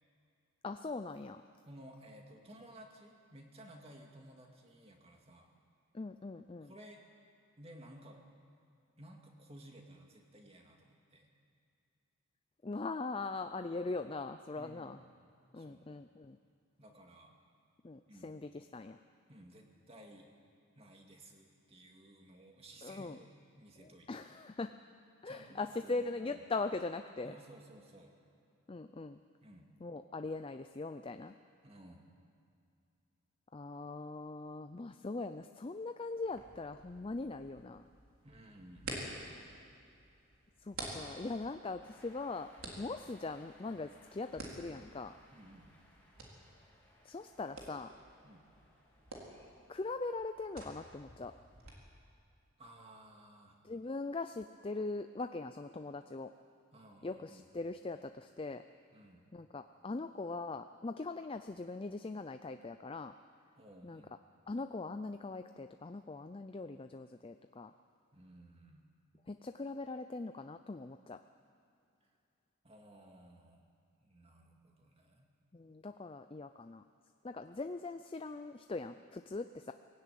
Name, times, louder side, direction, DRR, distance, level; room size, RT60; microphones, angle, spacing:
voice 1, 0.6-1.4 5.9-6.7 12.6-15.0 15.5-16.4 17.8-19.0 22.8-23.2 23.8-24.7 25.2-27.4 28.7-29.2 29.8-31.3 33.5-37.9 40.6-45.1 47.0-47.9 49.7-51.3 53.6-56.3 57.0-58.6 59.3-63.1 63.8-64.0 64.5-67.7 69.3-71.2 75.5-76.8 77.2-79.7, left 3 dB, 25° left, 8 dB, 0.4 m, -41 dB
voice 2, 1.7-5.5 6.6-7.0 7.6-8.2 9.0-11.3 14.6-15.1 15.5-15.9 16.8-17.3 18.1-18.4 19.3-20.3 20.8-23.3 23.6-24.2 25.2-26.5 27.2-28.1 29.4-29.7 31.6-32.1 38.2-39.0 45.3-45.7 48.2-48.5 52.6-53.6 56.7-57.5 58.9-59.2 63.6-64.1 68.1-68.9 72.0-72.1 72.6-73.7 74.0-75.3, right 1 dB, 30° right, 2 dB, 2.2 m, -56 dB
sound 1, 36.2-51.7, right 2 dB, 75° right, 3.9 m, -50 dB
Cheering, 41.8-49.5, left 1 dB, 5° left, 3.1 m, -65 dB
20.0 x 16.5 x 9.3 m, 2.6 s
head